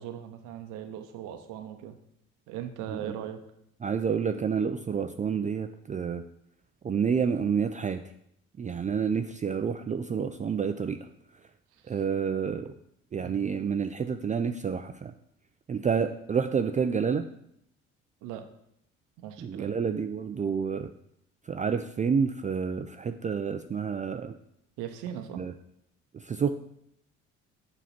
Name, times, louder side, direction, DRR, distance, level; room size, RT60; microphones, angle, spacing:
voice 1, 0.0-2.0 2.5-3.4 11.8-12.0 13.2-13.5 18.2-18.4 19.2-19.8 24.8-25.4, right 10 dB, 75° right, 7 dB, 0.8 m, -39 dB
voice 2, 3.8-6.2 6.8-8.0 8.6-11.0 11.9-12.7 13.1-15.1 15.7-17.2 19.4-20.9 21.5-24.3 25.4-25.5 26.1-26.5, right 6 dB, 25° right, 7 dB, 0.4 m, -29 dB
7.0 x 3.0 x 5.8 m, 0.75 s
hypercardioid pair, 60°, 32 cm